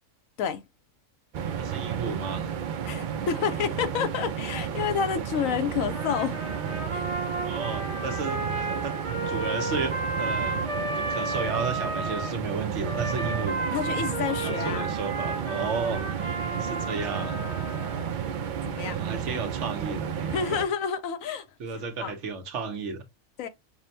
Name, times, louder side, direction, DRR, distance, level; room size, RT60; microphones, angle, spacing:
sound 1, 1.3-20.6, right 8 dB, 85° right, 0.4 m, -32 dB
voice 1, 1.6-2.5 7.4-8.4 8.8-9.0 9.3-13.6 13.9-17.5 18.8-20.4 21.6-23.0, right 4 dB, 65° right, 1.1 m, -33 dB
voice 2, 2.9-6.4 6.9-7.1 13.7-14.9 18.4-19.0 20.3-21.4 22.0-22.1 23.4-23.5, left 7 dB, 85° left, 1.1 m, -29 dB
Trumpet, 5.9-12.4 12.8-18.2, right 2 dB, 30° right, 0.8 m, -33 dB
6.0 x 2.1 x 2.6 m
omnidirectional pair, 1.4 m